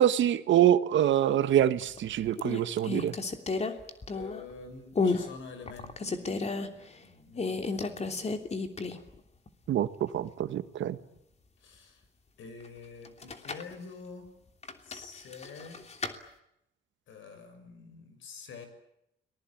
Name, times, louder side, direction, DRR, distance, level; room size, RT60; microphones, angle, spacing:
voice 1, 0.0-3.1 9.7-11.0, right 11 dB, 75° right, 12 dB, 1.5 m, -25 dB
sound 1, 1.6-2.0 2.4-4.5 4.9-5.3 5.7-6.7 7.4-9.1 9.5-9.6 13.0-13.7 14.6-16.2, left 4 dB, 35° left, 3.0 m, -32 dB
voice 2, 4.1-8.4 11.6-12.0 12.4-14.3 14.8-15.8 17.1-18.7, left 4 dB, 75° left, 9 dB, 6.9 m, -47 dB
30.0 x 20.5 x 8.8 m, 0.82 s
cardioid pair, 90°, 20 cm